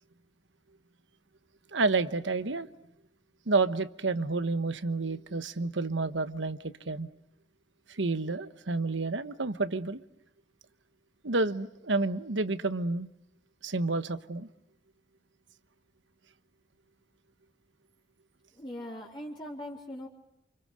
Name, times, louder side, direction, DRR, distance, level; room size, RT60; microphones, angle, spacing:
voice 1, 1.7-2.7 3.5-7.1 7.9-10.0 11.2-13.1 13.6-14.5, right 3 dB, 80° right, 12 dB, 1.2 m, -30 dB
voice 2, 18.6-20.1, left 1 dB, 25° left, -3 dB, 3.5 m, -40 dB
29.5 x 28.5 x 6.5 m, 0.77 s
head